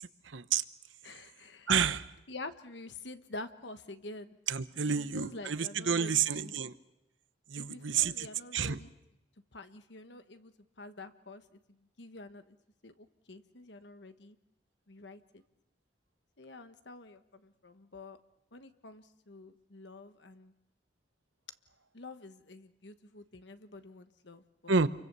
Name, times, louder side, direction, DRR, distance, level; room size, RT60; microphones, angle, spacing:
voice 1, 0.3-0.6 1.7-2.1 4.5-6.7 7.5-8.3 8.5-8.8 24.7-24.9, right 6 dB, 85° right, 12 dB, 1.0 m, -29 dB
voice 2, 1.0-1.7 2.3-4.3 4.9-6.6 7.5-8.9 9.5-12.6 12.8-14.4 14.9-15.4 16.4-18.2 18.5-20.5 21.9-24.8, left 2 dB, 65° left, 9 dB, 1.3 m, -48 dB
29.5 x 23.5 x 6.9 m, 0.91 s
head